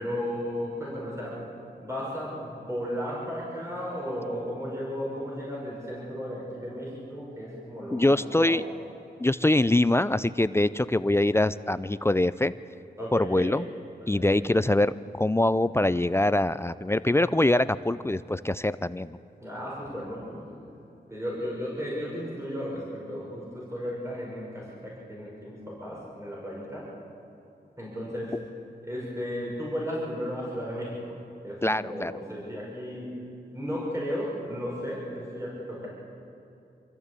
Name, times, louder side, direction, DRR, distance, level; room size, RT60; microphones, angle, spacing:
voice 1, 0.0-1.4 1.8-8.6 13.0-13.5 14.0-14.6 19.4-20.6 21.1-26.9 27.8-28.3 28.8-31.0 31.4-33.1 33.5-35.9, equal, 15° right, -5 dB, 5.5 m, -34 dB
voice 2, 7.9-8.6 9.2-12.5 13.1-13.7 14.1-19.2 31.6-32.1, left 1 dB, 15° left, 15 dB, 0.4 m, -24 dB
25.0 x 14.5 x 8.3 m, 2.7 s
wide cardioid pair, 100°, 18 cm